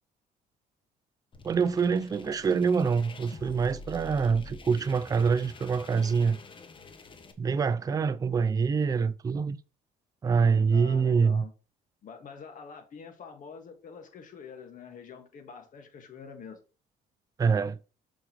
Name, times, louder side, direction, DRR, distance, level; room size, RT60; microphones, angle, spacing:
sound 1, 1.3-7.3, left 3 dB, 30° left, 1.0 m, -47 dB
voice 1, 1.4-6.4 7.4-9.6 10.2-11.4 17.4-17.8, right 5 dB, 20° right, 0.4 m, -25 dB
voice 2, 10.7-11.5 12.0-16.6, left 6 dB, 50° left, 1.7 m, -46 dB
6.5 x 5.0 x 3.0 m
cardioid pair, 110°, 17 cm